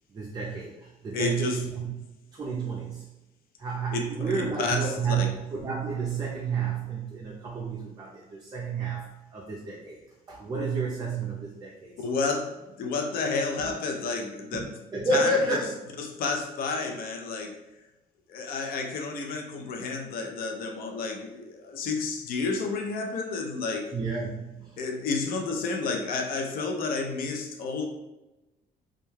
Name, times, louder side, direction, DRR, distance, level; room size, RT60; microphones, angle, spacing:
voice 1, 0.1-1.9 2.3-3.1 3.6-10.0 10.3-12.0 13.3-13.4 13.6-13.7 14.5-15.8 23.9-24.8, right 4 dB, 25° right, -3 dB, 0.4 m, -30 dB
voice 2, 1.1-1.7 3.9-5.3 12.0-14.7 15.1-15.3 16.0-17.6 18.3-23.9 24.8-27.9, left 4 dB, 60° left, 2 dB, 0.5 m, -31 dB
2.3 x 2.2 x 3.0 m, 1.0 s
cardioid pair, 110°, 17 cm